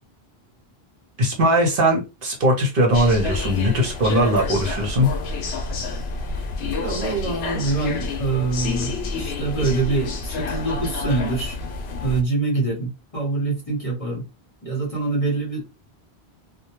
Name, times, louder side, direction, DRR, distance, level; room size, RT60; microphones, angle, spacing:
voice 1, 1.2-5.1, equal, 60° right, 0.9 m, -19 dB
sound 1, 2.9-12.2, left 3 dB, 75° left, 0.9 m, -29 dB
voice 2, 6.8-11.6 12.0-14.3 14.6-15.7, right 3 dB, 35° left, 0.9 m, -25 dB
2.2 x 2.2 x 2.9 m
omnidirectional pair, 1.1 m